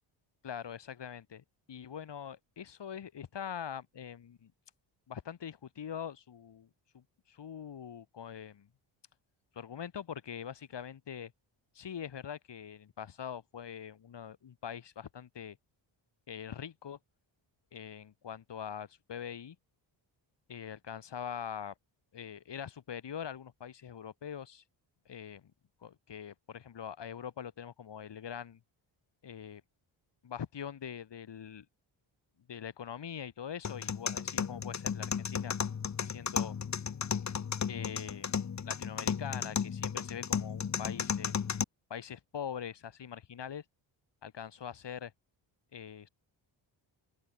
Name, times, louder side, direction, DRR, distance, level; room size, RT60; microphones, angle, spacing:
voice 1, 0.4-4.5 5.1-6.7 6.9-8.7 9.5-11.3 11.7-15.6 16.3-17.0 17.7-19.6 20.5-21.7 22.1-24.6 25.1-25.5 25.8-28.6 29.2-29.6 30.2-31.7 32.5-35.5 36.0-36.6 37.7-41.3 41.9-43.6 44.2-45.1 45.7-46.1, left 8 dB, 60° left, 7.2 m, -43 dB
sound 1, 33.6-41.6, left 7 dB, 35° left, 1.4 m, -34 dB
open air
wide cardioid pair, 130°, 48 cm